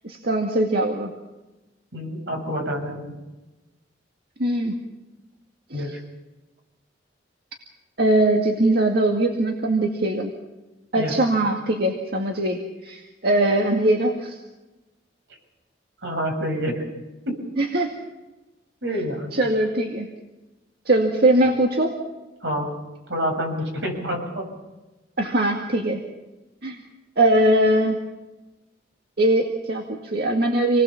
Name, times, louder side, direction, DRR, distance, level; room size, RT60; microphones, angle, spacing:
voice 1, 0.0-1.1 4.4-4.8 5.7-5.9 8.0-10.3 10.9-14.4 17.6-17.9 19.3-20.1 20.9-21.9 25.2-26.0 26.6-26.8 27.2-28.0 29.2-30.8, right 1 dB, 60° right, 2 dB, 2.1 m, -21 dB
voice 2, 1.9-3.2 5.7-6.0 10.9-11.1 16.0-16.8 17.2-17.4 18.8-19.3 22.4-22.7 23.1-24.5, equal, 80° right, 3 dB, 7.2 m, -27 dB
27.5 x 20.0 x 7.2 m, 1.1 s
head